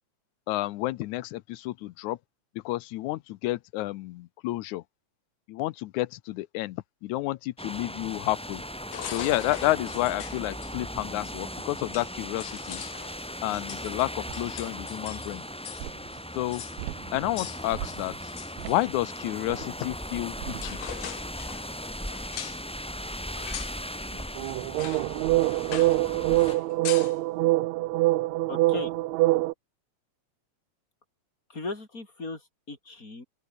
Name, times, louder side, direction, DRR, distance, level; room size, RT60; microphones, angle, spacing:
voice 1, 0.5-2.2 2.7-4.8 5.5-8.6 9.1-12.8 13.4-15.4 16.4-16.6 17.1-18.3 18.7-20.8, left 17 dB, 90° left, 2.1 m, -30 dB
sound 1, 7.6-26.6, equal, ahead, 3.8 m, -38 dB
sound 2, 8.9-10.7 11.6-11.7 11.9-15.9 16.1-16.2 16.5-16.8 17.4-18.8 20.1-20.2 20.5-22.6 23.3-23.8 24.2-24.3 24.8-25.1 25.4-26.1 26.3-27.2, left 11 dB, 65° left, 2.5 m, -41 dB
sound 3, 14.3-14.4 15.8-15.9 16.8-17.3 17.7-18.2 18.6-18.8 19.5-19.6 20.4-20.7 24.4-29.5, right 19 dB, 80° right, 1.8 m, -25 dB
voice 2, 28.5-28.9 31.5-33.2, left 3 dB, 25° left, 5.6 m, -37 dB
open air
omnidirectional pair, 3.4 m